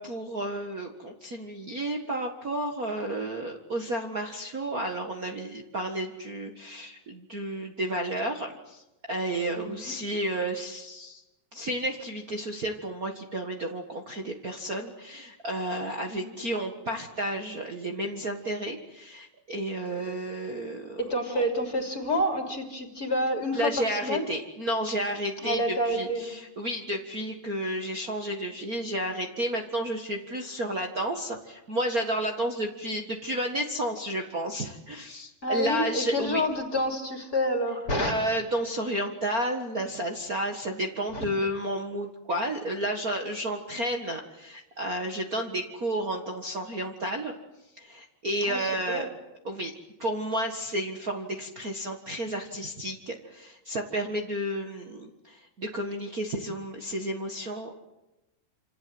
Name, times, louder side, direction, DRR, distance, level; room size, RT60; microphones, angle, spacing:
voice 1, 0.0-8.8 9.1-11.2 11.5-21.0 21.3-21.4 23.5-36.4 38.1-47.3 47.8-49.1 49.4-49.7 50.0-57.7, right 1 dB, 70° right, 3 dB, 0.8 m, -31 dB
voice 2, 9.5-9.9 16.1-16.4 21.0-24.3 25.4-26.3 35.4-38.1 41.1-41.2 48.5-49.1, equal, 25° left, 4 dB, 3.0 m, -28 dB
27.5 x 27.5 x 7.9 m, 0.98 s
omnidirectional pair, 4.6 m